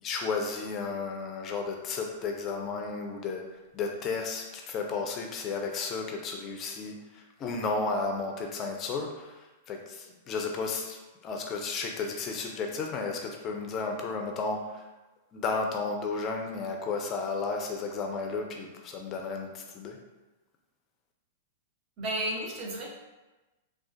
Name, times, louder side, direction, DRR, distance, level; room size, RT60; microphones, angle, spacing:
voice 1, 0.0-3.4 3.7-9.3 9.7-14.8 15.3-20.0, left 4 dB, 35° left, 3 dB, 0.4 m, -33 dB
voice 2, 22.0-22.9, right 1 dB, 40° right, -2 dB, 0.8 m, -32 dB
3.6 x 2.4 x 2.5 m, 1.1 s
hypercardioid pair, 110°, 0 cm